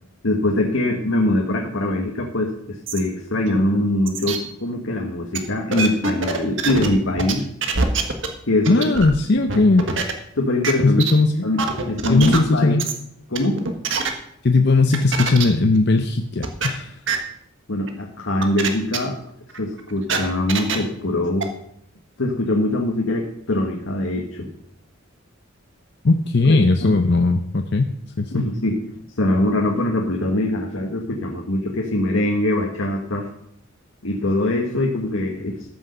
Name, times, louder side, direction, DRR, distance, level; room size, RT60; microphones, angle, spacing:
voice 1, 0.2-7.5 8.5-8.9 10.3-11.0 11.4-12.8 13.3-13.6 17.7-19.2 19.6-21.5 22.2-24.5 26.4-26.9 28.3-28.8 29.2-33.3 34.0-35.7, left 1 dB, 80° left, 1 dB, 1.4 m, -22 dB
sound 1, 2.9-3.0 3.5-3.6 4.1-4.4 5.3-5.4 5.7-6.9 7.2-7.3 7.6-8.3 8.6-9.1 9.5-10.1 10.6-10.7 11.0-11.1 11.6-12.4 12.8-12.9 13.3-14.1 14.9-15.4 15.7-15.8 16.4-16.7 17.1-17.2 17.9-18.0 18.4-18.7 18.9-19.0 19.5-20.8 21.4-21.5, right 5 dB, 65° right, 1.5 m, -23 dB
voice 2, 8.7-9.9 10.8-11.5 12.1-12.8 14.4-17.0 26.0-27.9 28.2-28.5, left 3 dB, 55° left, 6 dB, 0.7 m, -18 dB
13.5 x 6.4 x 6.6 m, 0.71 s
head